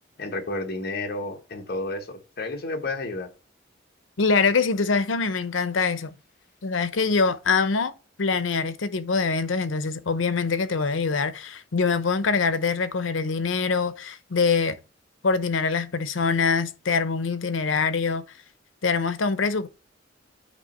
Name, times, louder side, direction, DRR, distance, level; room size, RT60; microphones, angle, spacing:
voice 1, 0.2-3.3, left 2 dB, 55° left, 1.1 m, -31 dB
voice 2, 4.2-6.1 6.6-14.8 15.2-18.2 18.8-19.7, left 4 dB, 85° left, 0.7 m, -24 dB
8.4 x 2.9 x 5.3 m
head